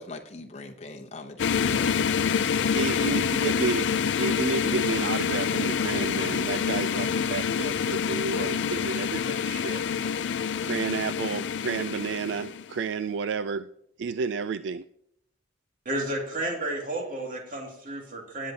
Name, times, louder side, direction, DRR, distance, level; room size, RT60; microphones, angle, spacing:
voice 1, 0.0-2.2, left 2 dB, 35° left, 3 dB, 0.9 m, -41 dB
sound 1, 1.4-12.7, left 7 dB, 70° left, 0.4 m, -27 dB
voice 2, 2.5-9.8 10.6-13.7 14.0-14.8, right 5 dB, 70° right, 13 dB, 0.3 m, -31 dB
voice 3, 15.9-18.5, right 1 dB, 45° right, 0 dB, 2.4 m, -32 dB
18.5 x 8.4 x 2.8 m, 0.72 s
head